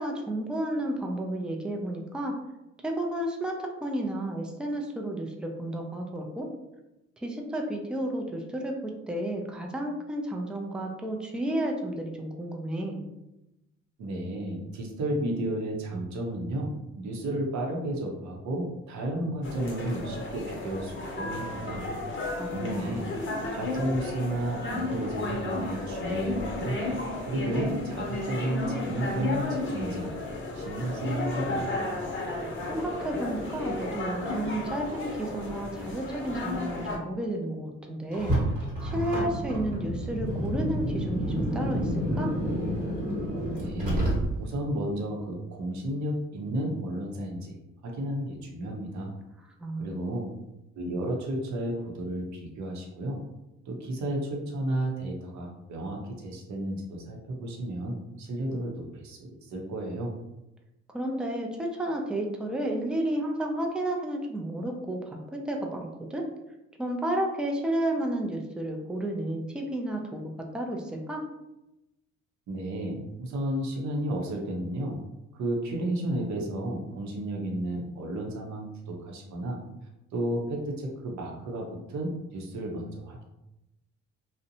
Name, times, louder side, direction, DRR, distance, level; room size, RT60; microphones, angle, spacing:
voice 1, 0.0-2.4 2.8-6.5 7.2-13.1 22.4-23.0 32.7-38.4 38.8-42.3 49.6-50.2 60.9-66.2 66.8-71.2, right 1 dB, 5° right, 1 dB, 0.3 m, -32 dB
voice 2, 14.0-21.8 22.4-23.1 23.5-26.8 27.3-31.8 43.5-44.0 44.4-47.5 47.8-49.1 49.8-50.3 50.7-53.2 53.7-60.1 72.5-75.0 75.3-79.6 80.1-83.2, right 1 dB, 65° right, 0 dB, 0.7 m, -32 dB
sound 1, 19.4-37.0, left 2 dB, 40° left, 0.8 m, -33 dB
Car, 38.1-44.6, equal, 30° right, 1.1 m, -29 dB
2.6 x 2.0 x 2.7 m, 0.95 s
cardioid pair, 90°, 30 cm